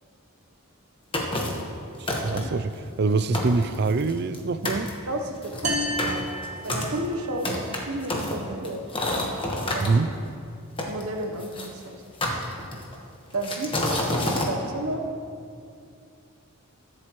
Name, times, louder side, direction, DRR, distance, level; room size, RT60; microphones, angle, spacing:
sound 1, 1.1-1.7 2.1-2.6 3.1-3.2 3.3-4.4 4.6-4.9 5.4-9.9 10.8-11.7 12.2-12.9 13.4-14.5, left 1 dB, 25° left, 1.3 m, -28 dB
voice 1, 2.0-2.7 3.0-4.9 9.8-10.1, right 3 dB, 50° right, 13 dB, 0.4 m, -24 dB
voice 2, 5.1-6.3 6.6-9.3 9.7-10.1 10.9-12.0 13.3-13.8 14.1-15.0, right 1 dB, 85° right, 3 dB, 1.0 m, -32 dB
sound 2, 5.6-7.4, equal, 35° right, 1.3 m, -30 dB
21.5 x 7.7 x 3.1 m, 2.4 s
head